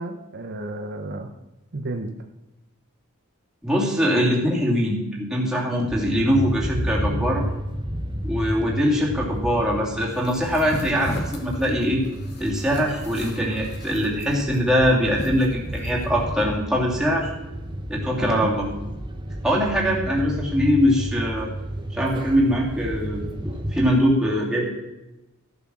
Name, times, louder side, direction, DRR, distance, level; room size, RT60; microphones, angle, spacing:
voice 1, 0.0-1.3 1.7-2.1 18.2-18.5, right 2 dB, 50° right, 5 dB, 0.8 m, -31 dB
voice 2, 3.6-7.4 8.2-12.0 12.4-17.3 17.9-18.7 19.4-21.5 21.9-24.7, equal, 5° right, -4 dB, 2.7 m, -22 dB
sound 1, 5.9-24.0, right 1 dB, 20° right, 1.1 m, -32 dB
sound 2, 10.2-16.0, left 1 dB, 50° left, 1.7 m, -35 dB
14.0 x 7.0 x 6.2 m, 0.96 s
head